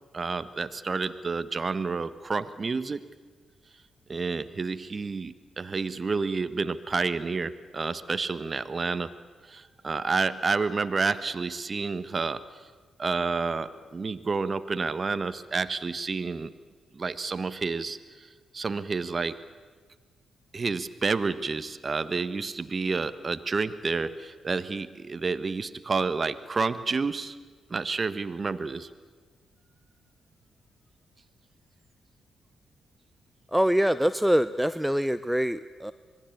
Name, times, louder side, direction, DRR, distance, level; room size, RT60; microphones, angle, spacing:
voice 1, 0.1-3.0 4.1-9.1 9.5-12.4 13.0-16.5 16.9-19.4 20.5-27.4 27.7-28.9, right 4 dB, 40° right, 14 dB, 1.4 m, -29 dB
voice 2, 33.5-35.9, equal, 5° right, 14 dB, 0.8 m, -24 dB
26.5 x 22.0 x 8.6 m, 1.4 s
hypercardioid pair, 40°, 0 cm